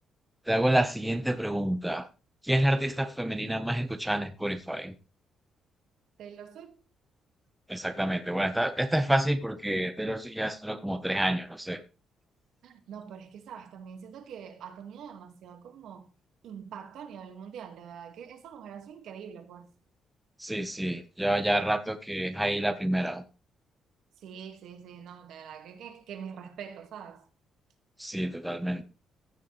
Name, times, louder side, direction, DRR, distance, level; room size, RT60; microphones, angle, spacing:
voice 1, 0.5-2.1 2.4-4.9 7.7-11.8 20.4-23.2 28.0-28.8, right 1 dB, 5° right, 1.3 m, -28 dB
voice 2, 6.2-6.9 12.6-16.1 16.4-19.7 24.2-27.3, right 7 dB, 75° right, 2.2 m, -44 dB
15.5 x 6.7 x 3.4 m
cardioid pair, 90°, 0 cm